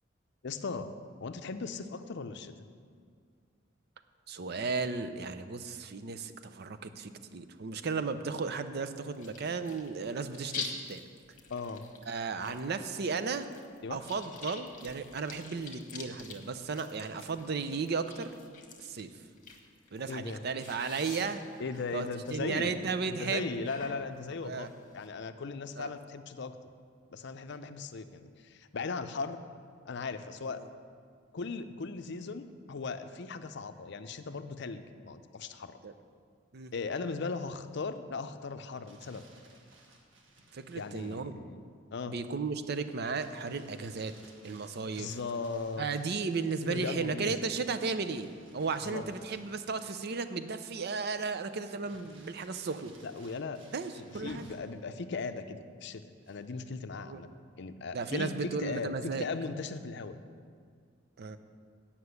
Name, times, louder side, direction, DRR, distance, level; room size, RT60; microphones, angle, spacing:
voice 1, 0.4-0.9 1.2-2.5 11.5-11.9 13.8-14.0 20.1-20.4 21.6-22.8 23.1-26.6 27.1-29.4 29.8-30.6 31.3-35.8 36.7-39.2 40.7-41.6 41.9-42.1 45.0-45.9 46.6-47.5 48.8-49.1 53.0-53.6 54.2-57.3 57.6-60.2, left 4 dB, 60° left, 10 dB, 0.5 m, -38 dB
voice 2, 4.3-11.0 12.1-13.5 13.9-18.3 18.8-19.1 19.9-21.4 21.9-23.5 24.4-24.7 25.8-25.9 30.5-30.7 35.8-35.9 36.5-36.7 40.5-41.4 42.0-44.1 44.4-45.2 45.8-48.3 48.5-52.9 53.7-54.4 57.0-57.2 57.9-59.3 61.2-61.4, right 4 dB, 55° right, 10 dB, 0.6 m, -35 dB
sound 1, 9.1-25.1, left 4 dB, 45° left, 1.2 m, -47 dB
Crumpling crinkling, 38.6-41.2 43.1-46.7 48.1-50.5 50.9-51.0 51.8-54.8 56.2-56.7, right 1 dB, 85° right, 1.5 m, -56 dB
9.6 x 5.9 x 8.1 m, 2.1 s
head